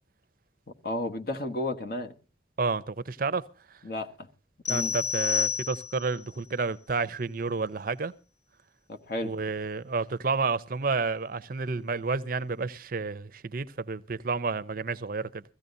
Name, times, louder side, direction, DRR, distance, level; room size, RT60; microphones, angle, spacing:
voice 1, 0.8-2.1 3.8-4.3 4.7-5.0 8.9-9.4, left 1 dB, 50° left, 1.2 m, -33 dB
voice 2, 2.6-3.4 4.7-8.1 9.2-15.4, right 4 dB, 50° right, 0.6 m, -30 dB
sound 1, 4.6-6.2, left 7 dB, 85° left, 3.4 m, -29 dB
22.0 x 15.5 x 2.6 m
head